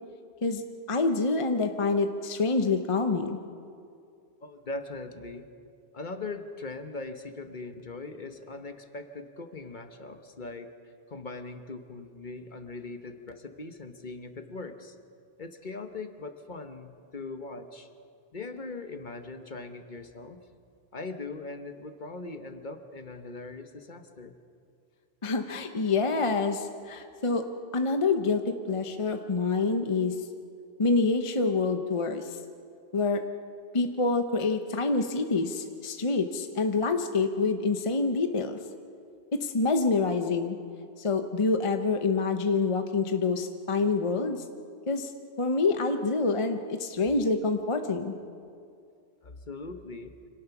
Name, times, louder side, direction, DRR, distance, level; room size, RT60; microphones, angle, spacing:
voice 1, 0.9-3.4 25.2-27.4 27.7-30.2 30.8-32.4 32.9-33.2 33.7-38.6 39.3-40.6 41.0-44.4 44.9-45.1 45.4-48.1, left 3 dB, 35° left, 6 dB, 0.8 m, -27 dB
voice 2, 4.4-5.5 5.9-10.7 11.1-15.0 15.4-17.9 18.3-20.4 20.9-24.4 49.2-50.2, left 3 dB, 50° left, 7 dB, 1.2 m, -40 dB
25.5 x 18.0 x 5.9 m, 2.4 s
omnidirectional pair, 1.1 m